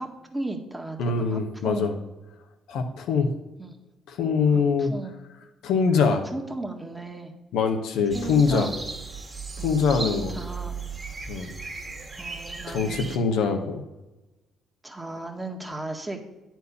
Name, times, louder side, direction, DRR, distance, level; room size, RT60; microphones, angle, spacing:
voice 1, 0.0-1.9 3.6-3.8 4.5-5.2 6.1-7.3 8.1-8.7 9.6-10.7 12.2-13.3 14.8-16.2, right 2 dB, 15° right, 2 dB, 1.7 m, -36 dB
voice 2, 1.0-1.9 2.7-3.3 4.1-4.9 5.6-6.2 7.5-8.7 9.6-10.4 11.3-11.5 12.7-13.8, left 5 dB, 75° left, 4 dB, 1.0 m, -23 dB
sound 1, 8.1-13.2, right 4 dB, 30° right, 1.9 m, -36 dB
9.3 x 4.5 x 6.9 m, 1.1 s
hypercardioid pair, 50°, 0 cm